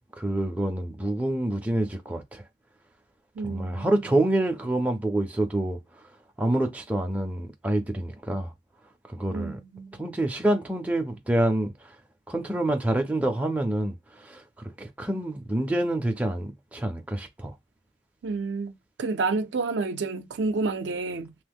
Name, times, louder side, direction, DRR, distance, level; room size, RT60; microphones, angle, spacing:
voice 1, 0.2-2.4 3.4-5.8 6.4-8.5 9.1-9.6 10.0-11.7 12.3-13.9 14.2-17.5, right 1 dB, 10° right, 0.4 m, -27 dB
voice 2, 3.3-4.0 9.3-10.0 18.2-21.3, right 3 dB, 65° right, 0.4 m, -30 dB
2.9 x 2.0 x 3.4 m
head